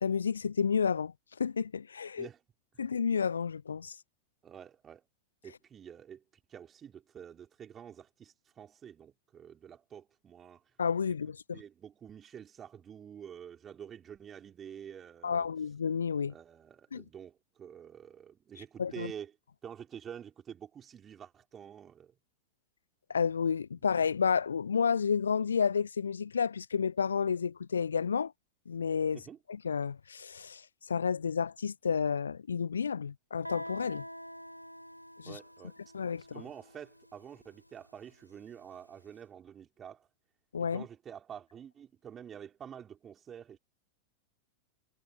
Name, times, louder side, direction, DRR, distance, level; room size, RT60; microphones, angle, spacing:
voice 1, 0.0-2.3 2.8-4.0 10.8-11.6 15.2-16.3 16.9-17.0 18.8-19.1 23.1-28.3 28.7-29.2 29.5-34.0 35.2-35.4 35.9-36.2 40.5-40.8, left 6 dB, 70° left, 0.8 m, -31 dB
voice 2, 4.4-5.1 5.4-6.2 6.5-10.6 11.5-15.5 16.3-19.3 19.6-22.1 29.1-29.4 35.2-35.7 36.2-40.1 40.7-43.6, right 8 dB, 25° right, 4.5 m, -48 dB
Guitar, 33.4-38.9, equal, 90° left, 4.8 m, -47 dB
figure-of-eight pair, 90°, 0 cm